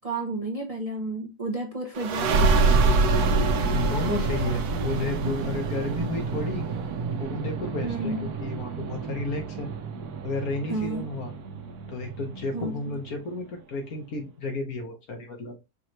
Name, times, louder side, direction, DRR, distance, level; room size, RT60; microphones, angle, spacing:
voice 1, 0.0-2.5 7.8-8.3 10.7-11.1 12.5-12.9, right 2 dB, 30° right, 0.7 m, -31 dB
sound 1, 2.0-13.2, right 3 dB, 80° right, 1.3 m, -26 dB
voice 2, 3.7-6.7 7.2-9.7 10.2-11.3 11.9-15.6, left 3 dB, 70° left, 1.8 m, -32 dB
5.5 x 3.1 x 2.9 m
omnidirectional pair, 1.6 m